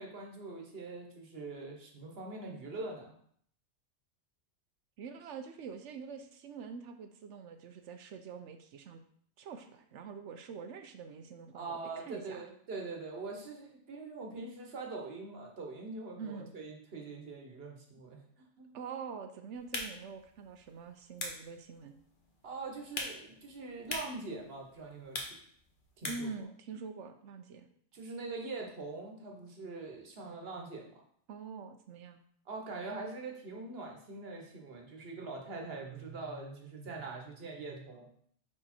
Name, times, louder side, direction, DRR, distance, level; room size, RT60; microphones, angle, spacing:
voice 1, 0.0-3.1 11.5-18.7 22.4-25.3 26.0-26.3 27.9-31.0 32.5-38.1, right 3 dB, 55° right, 1 dB, 1.3 m, -43 dB
voice 2, 5.0-9.0 9.4-12.5 16.2-16.5 18.7-22.0 26.0-27.7 31.3-32.2, right 5 dB, 75° right, 7 dB, 0.9 m, -45 dB
sound 1, 19.5-26.4, left 2 dB, 45° left, 1.1 m, -44 dB
4.9 x 4.7 x 4.3 m, 0.62 s
omnidirectional pair, 1.2 m